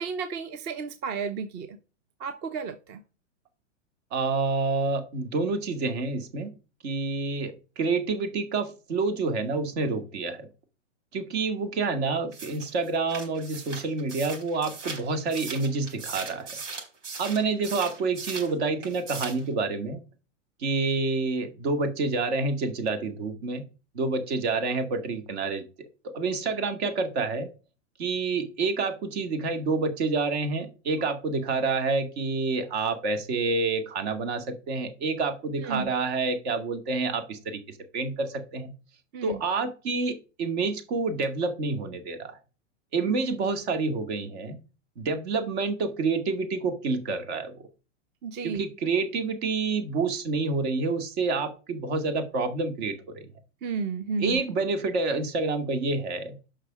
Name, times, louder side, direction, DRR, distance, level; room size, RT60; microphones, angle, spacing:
voice 1, 0.0-1.8 2.2-3.0 35.6-35.9 39.1-39.4 43.1-43.2 48.2-48.6 53.6-54.4, right 5 dB, 30° right, 10 dB, 0.7 m, -32 dB
voice 2, 4.1-6.5 6.8-10.5 11.1-16.5 17.2-20.0 20.6-23.6 23.9-27.5 28.0-38.7 39.2-42.4 42.9-44.6 45.0-47.6 48.4-53.3 54.2-56.3, right 3 dB, 60° right, 7 dB, 2.2 m, -28 dB
sound 1, 12.3-18.5 18.8-19.5, right 4 dB, 80° right, 4.5 m, -39 dB
6.6 x 5.7 x 6.2 m, 0.33 s
hypercardioid pair, 135°, 37 cm